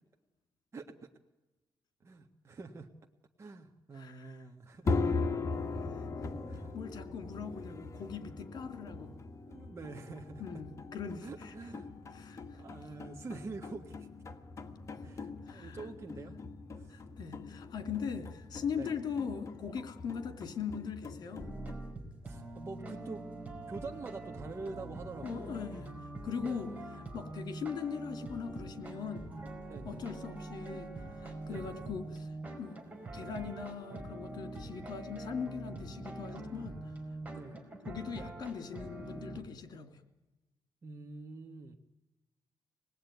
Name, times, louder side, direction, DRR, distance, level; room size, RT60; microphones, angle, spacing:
voice 1, 0.7-1.1 2.0-2.9 3.4-5.0 6.5-6.7 9.5-10.4 11.2-11.9 12.5-14.1 15.0-16.4 16.7-17.0 18.8-18.9 22.2-23.2 23.7-25.6 26.4-26.8 29.7-30.0 31.5-31.7 37.3-37.6 40.8-41.8, right 3 dB, 35° right, 3 dB, 1.7 m, -46 dB
voice 2, 3.9-4.4 6.2-6.3 6.7-9.1 10.4-11.5 12.1-12.6 15.5-15.8 16.9-21.5 25.2-25.9 26.2-26.7 27.1-29.3 29.8-32.8 33.1-36.8 37.9-40.0, left 6 dB, 65° left, 8 dB, 3.1 m, -40 dB
sound 1, 4.8-21.7, left 3 dB, 40° left, 1.9 m, -40 dB
sound 2, 21.4-39.4, right 2 dB, 20° right, 5.0 m, -44 dB
26.5 x 19.5 x 9.4 m, 1.1 s
cardioid pair, 120°, 8 cm